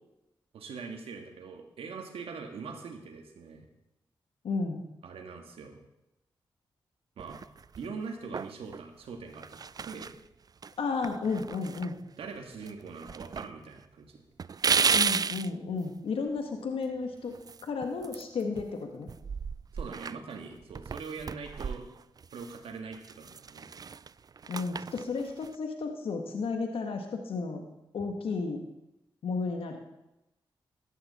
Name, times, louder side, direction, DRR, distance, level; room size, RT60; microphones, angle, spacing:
voice 1, 0.5-3.7 5.0-5.8 7.2-7.4 7.8-10.1 12.2-14.2 19.7-21.8 22.3-23.7, right 5 dB, 80° right, 4 dB, 1.8 m, -42 dB
voice 2, 4.4-4.8 10.8-12.0 14.9-17.3 17.6-19.1 24.5-27.6 27.9-28.6 29.2-29.8, left 4 dB, 75° left, 4 dB, 1.5 m, -33 dB
sound 1, 7.2-7.9 8.3-8.8 9.3-10.2 10.6-10.7 11.0-12.4 12.6-13.5 13.8-13.9 14.4-15.5 17.3-18.7 19.0-22.6 22.9-25.5, right 6 dB, 40° right, 0.3 m, -33 dB
14.0 x 11.0 x 4.2 m, 0.91 s
supercardioid pair, 45°, 10 cm